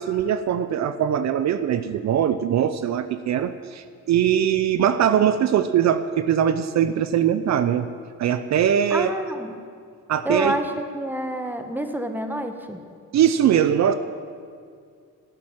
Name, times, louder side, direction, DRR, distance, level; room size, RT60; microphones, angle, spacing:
voice 1, 0.0-7.9 8.2-9.1 10.1-10.6 13.1-13.9, right 9 dB, 65° right, 12 dB, 0.7 m, -21 dB
voice 2, 8.9-9.6 10.2-12.8, right 1 dB, 5° right, 6 dB, 1.4 m, -28 dB
16.0 x 7.6 x 8.9 m, 2.2 s
cardioid pair, 90°, 30 cm